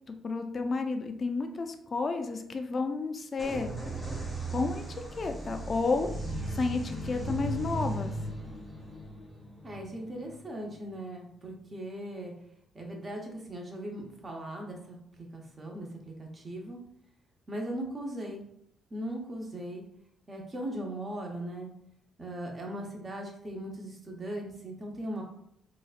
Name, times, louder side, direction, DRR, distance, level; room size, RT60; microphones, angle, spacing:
voice 1, 0.1-3.7 4.5-4.8 5.2-6.1 6.5-8.1, left 4 dB, 40° left, 6 dB, 0.4 m, -31 dB
sound 1, 3.4-11.0, right 2 dB, 5° right, 1.0 m, -37 dB
voice 2, 9.6-12.3 12.7-15.0 15.3-16.8 17.5-18.5 18.9-19.8 20.3-21.7 22.2-25.2, right 1 dB, 30° right, 0 dB, 0.9 m, -38 dB
4.0 x 2.3 x 2.4 m, 0.71 s
cardioid pair, 90°, 0 cm